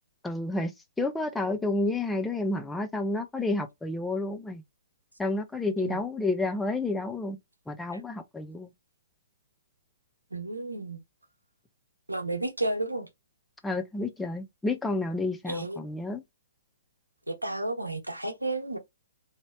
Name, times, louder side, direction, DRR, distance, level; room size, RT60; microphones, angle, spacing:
voice 1, 0.2-0.7 1.0-4.6 5.2-7.4 7.7-8.7 13.6-16.2, left 2 dB, 5° left, 0.4 m, -30 dB
voice 2, 10.3-11.0 12.1-13.1 15.4-15.8 17.3-18.8, right 2 dB, 85° right, 0.8 m, -32 dB
3.0 x 2.8 x 2.2 m
figure-of-eight pair, 120°, 0 cm